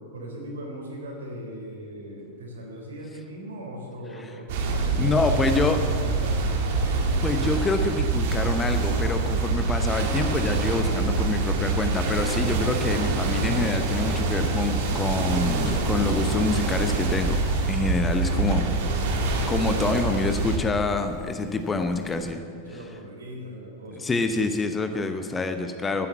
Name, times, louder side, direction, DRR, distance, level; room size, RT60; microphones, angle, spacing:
voice 1, 0.1-5.2 5.6-6.5 22.7-24.1, right 1 dB, 70° right, 0 dB, 3.8 m, -39 dB
sound 1, 4.5-20.6, right 3 dB, 50° right, 1.9 m, -25 dB
voice 2, 5.0-5.9 7.2-18.7 19.5-22.4 22.7-22.8 24.0-26.1, left 3 dB, 15° left, 7 dB, 0.9 m, -27 dB
Zipper (clothing), 10.6-22.3, left 5 dB, 35° left, 1.3 m, -40 dB
13.0 x 10.5 x 7.3 m, 2.4 s
figure-of-eight pair, 90°, 0 cm